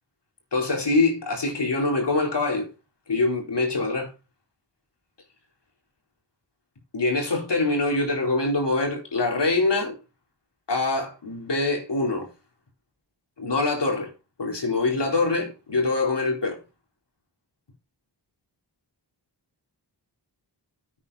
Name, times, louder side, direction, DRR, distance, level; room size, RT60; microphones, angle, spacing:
voice 1, 0.5-2.7 3.1-4.1 6.9-10.0 10.7-12.3 13.4-14.1 14.4-16.6, left 3 dB, 70° left, 4.3 m, -24 dB
10.5 x 8.9 x 4.3 m
wide cardioid pair, 75°, 43 cm